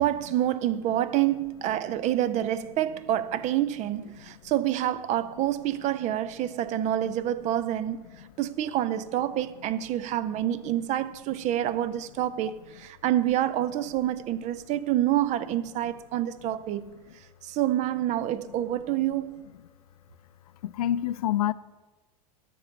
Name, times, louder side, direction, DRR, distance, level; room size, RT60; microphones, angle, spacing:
voice 1, 0.0-8.0 8.4-17.0 17.4-19.4, right 12 dB, 35° right, 0.6 m, -27 dB
voice 2, 20.6-21.5, left 12 dB, 70° left, 0.4 m, -26 dB
12.5 x 5.4 x 7.0 m
figure-of-eight pair, 90°, 20 cm